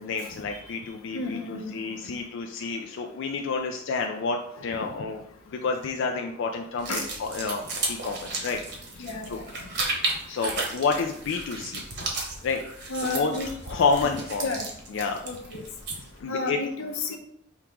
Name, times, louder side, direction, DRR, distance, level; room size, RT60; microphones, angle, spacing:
voice 1, 0.0-8.6 9.0-9.4 10.3-11.8 12.4-12.6 13.0-13.3 13.7-14.5 14.9-15.2 16.2-16.6, left 4 dB, 60° left, 3 dB, 0.4 m, -29 dB
voice 2, 1.1-1.7 4.6-4.7 6.9-7.1 9.0-9.4 12.9-13.5 14.0-14.1 14.4-14.6 15.2-15.6 16.3-17.2, left 3 dB, 90° left, 3 dB, 0.7 m, -32 dB
sound 1, 6.8-16.2, right 3 dB, 55° right, 1.0 m, -34 dB
4.6 x 2.9 x 3.5 m, 0.68 s
head